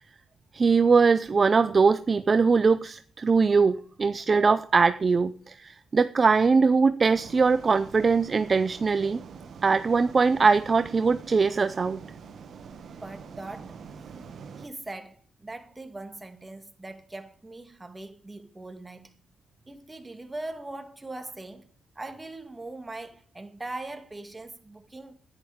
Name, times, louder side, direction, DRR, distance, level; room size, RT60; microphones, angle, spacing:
voice 1, 0.5-9.2 9.6-12.0, right 4 dB, 35° right, 0.6 m, -22 dB
sound 1, 7.1-14.7, right 6 dB, 60° right, 1.4 m, -45 dB
voice 2, 13.0-14.1 14.6-19.2 19.7-25.1, right 2 dB, 20° right, 2.0 m, -41 dB
10.5 x 10.5 x 5.1 m
cardioid pair, 85°, 0 cm